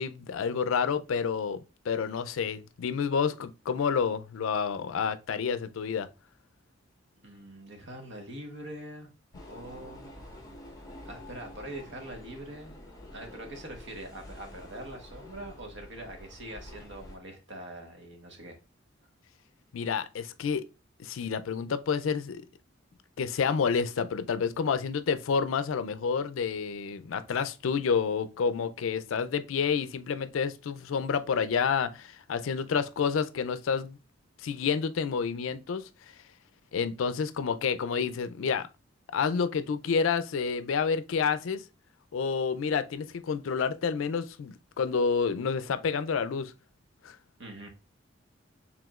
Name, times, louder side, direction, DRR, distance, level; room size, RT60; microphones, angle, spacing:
voice 1, 0.0-1.6 1.9-6.1 19.7-20.6 21.0-22.4 23.2-34.0 34.4-35.8 36.7-38.7 39.1-41.6 42.1-46.5 47.0-47.2, left 6 dB, 80° left, 0.4 m, -29 dB
voice 2, 7.2-9.1 9.5-10.4 11.0-12.7 13.1-18.6 47.4-47.7, right 1 dB, 65° right, 1.1 m, -43 dB
sound 1, 9.3-17.2, left 1 dB, 20° left, 0.9 m, -48 dB
4.9 x 3.5 x 2.3 m
head